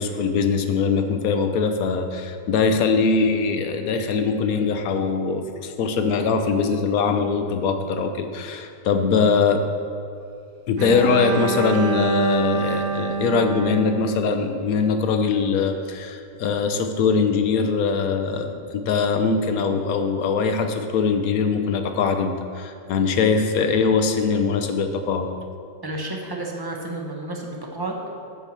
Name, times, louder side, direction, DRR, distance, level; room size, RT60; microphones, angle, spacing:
voice 1, 0.0-9.6 10.7-25.3, left 5 dB, 65° left, 7 dB, 1.1 m, -22 dB
Bowed string instrument, 10.8-14.8, right 5 dB, 75° right, 1.6 m, -26 dB
voice 2, 25.8-28.2, right 2 dB, 20° right, 0 dB, 0.8 m, -31 dB
9.1 x 4.7 x 7.2 m, 2.5 s
omnidirectional pair, 1.8 m